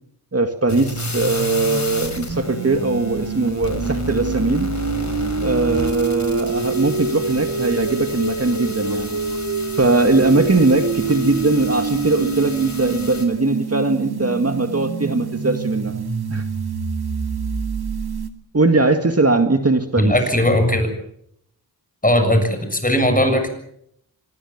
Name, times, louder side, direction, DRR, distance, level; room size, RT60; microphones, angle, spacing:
voice 1, 0.3-4.7 5.4-9.2 9.8-16.0 16.3-16.4 18.5-20.1, right 2 dB, 40° right, 6 dB, 2.0 m, -20 dB
sound 1, 0.7-13.3, left 3 dB, 45° left, 5.0 m, -32 dB
sound 2, 0.7-18.3, right 5 dB, 80° right, 2.3 m, -26 dB
voice 2, 20.0-20.9 22.0-23.5, left 1 dB, 20° left, 6 dB, 7.1 m, -18 dB
25.5 x 21.5 x 7.3 m, 0.72 s
wide cardioid pair, 70°, 38 cm